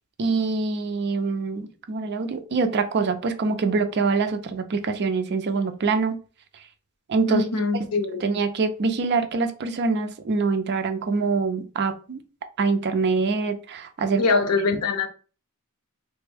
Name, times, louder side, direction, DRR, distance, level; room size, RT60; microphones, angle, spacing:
voice 1, 0.2-6.2 7.1-7.4 8.2-12.2 12.6-14.4, right 4 dB, 50° right, 0.4 m, -24 dB
voice 2, 7.3-8.2 14.2-15.1, left 4 dB, 85° left, 0.6 m, -23 dB
3.3 x 2.1 x 3.4 m
head